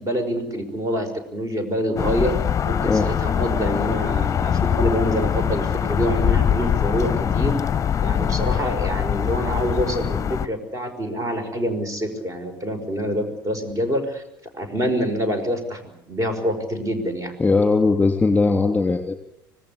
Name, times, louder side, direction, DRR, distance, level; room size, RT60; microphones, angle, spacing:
voice 1, 0.0-2.3 2.6-7.6 8.0-14.2 14.5-15.8 16.1-17.3, equal, 30° right, 8 dB, 5.4 m, -26 dB
sound 1, 2.0-10.5, left 8 dB, 30° left, 0.9 m, -23 dB
voice 2, 17.4-19.2, left 3 dB, 10° left, 6 dB, 3.2 m, -19 dB
25.5 x 19.0 x 8.5 m, 0.79 s
figure-of-eight pair, 65°, 11 cm